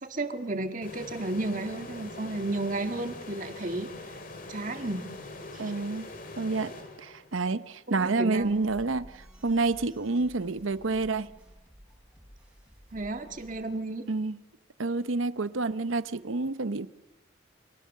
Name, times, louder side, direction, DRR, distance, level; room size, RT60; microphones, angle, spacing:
voice 1, 0.0-3.9 4.5-5.1 5.5-5.7 7.9-8.6 12.9-14.0, right 2 dB, 40° right, 1.8 m, -33 dB
sound 1, 0.8-7.5, left 2 dB, 45° left, 2.2 m, -43 dB
voice 2, 5.6-6.1 6.4-6.7 7.0-11.3 14.1-14.4 14.8-16.9, right 3 dB, 80° right, 0.8 m, -29 dB
sound 2, 8.4-13.7, equal, 5° right, 4.8 m, -53 dB
29.0 x 24.0 x 6.6 m
head